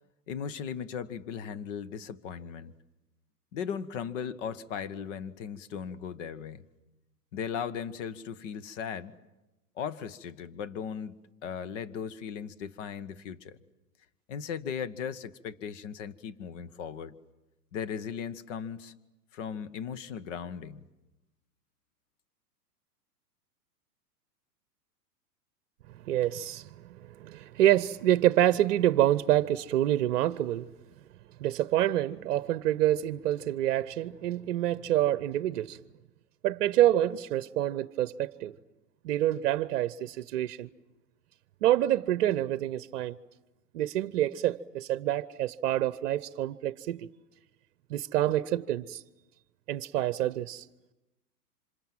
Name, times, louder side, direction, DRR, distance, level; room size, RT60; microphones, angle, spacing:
voice 1, 0.3-2.7 3.5-6.6 7.3-9.1 9.8-13.6 14.3-17.1 17.7-18.9 19.3-20.8, left 7 dB, 50° left, 1.4 m, -37 dB
voice 2, 26.1-30.7 31.4-35.8 36.4-38.6 39.0-40.7 41.6-43.2 43.7-47.1 47.9-49.0 49.7-50.7, right 13 dB, 50° right, 0.8 m, -27 dB
27.5 x 26.5 x 7.5 m
hypercardioid pair, 110°, 47 cm